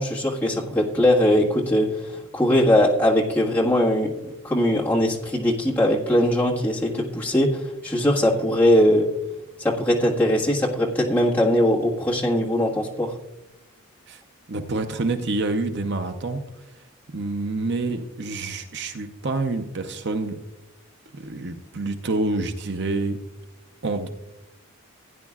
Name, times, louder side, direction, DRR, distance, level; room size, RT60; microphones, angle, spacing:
voice 1, 0.0-4.1 4.4-9.1 9.6-13.2, left 1 dB, 10° left, -5 dB, 1.6 m, -21 dB
voice 2, 14.5-16.4 17.1-20.4 21.1-23.2 23.8-24.1, right 2 dB, 50° right, 7 dB, 0.7 m, -27 dB
16.0 x 9.7 x 2.4 m, 0.94 s
head